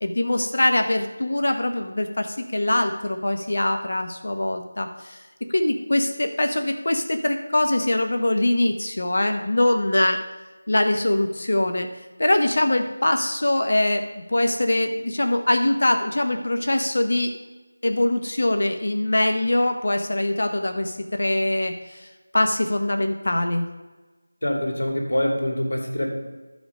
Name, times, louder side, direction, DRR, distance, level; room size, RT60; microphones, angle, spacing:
voice 1, 0.0-5.2 5.5-10.2 10.7-11.9 12.2-14.0 14.3-17.3 17.8-22.1 22.3-23.7, left 1 dB, 60° left, 6 dB, 0.8 m, -23 dB
voice 2, 24.4-26.1, left 1 dB, 80° left, 1 dB, 2.6 m, -24 dB
13.0 x 5.1 x 5.1 m, 1.2 s
figure-of-eight pair, 175°, 0 cm